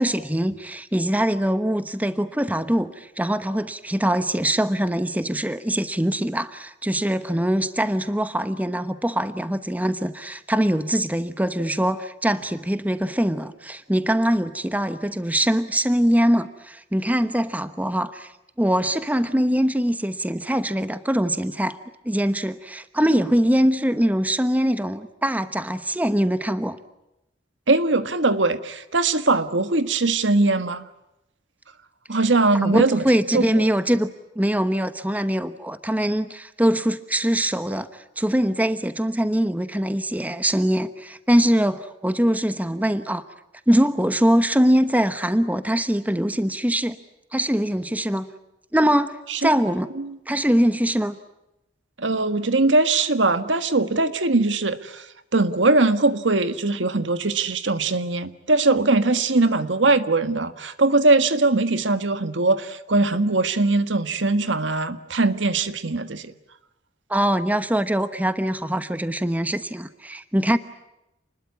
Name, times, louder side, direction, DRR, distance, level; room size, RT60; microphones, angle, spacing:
voice 1, 0.0-18.3 18.6-21.8 22.0-26.8 32.6-34.1 34.4-43.2 43.7-47.0 47.3-48.3 48.7-49.9 50.3-51.2 67.1-70.6, equal, 10° right, 11 dB, 1.0 m, -22 dB
voice 2, 27.7-30.8 32.1-33.0 33.3-33.6 49.3-49.6 50.0-50.1 52.0-55.1 55.3-66.3, right 3 dB, 75° right, 11 dB, 1.6 m, -21 dB
29.0 x 21.0 x 9.7 m, 0.89 s
head